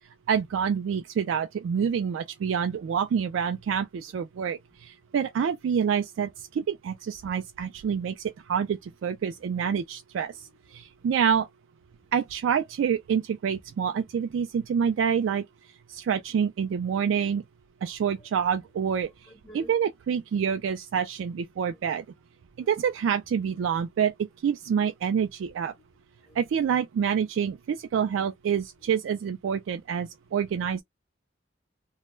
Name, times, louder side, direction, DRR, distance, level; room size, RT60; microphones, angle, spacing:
voice 1, 0.3-10.3 10.7-11.5 12.1-15.4 15.9-17.4 17.8-19.1 19.5-22.0 22.7-24.1 24.4-25.7 26.4-30.8, right 7 dB, 75° right, 0.3 m, -27 dB
voice 2, 10.3-11.1 11.9-12.1 14.0-14.2 16.3-16.4 16.7-16.8 18.0-18.3 19.3-19.7 21.7-21.8 22.6-22.8 23.2-23.4 26.3-26.4 28.0-28.1 28.8-28.9 30.6-30.8, right 1 dB, 10° left, 1.1 m, -55 dB
2.1 x 2.1 x 3.0 m
head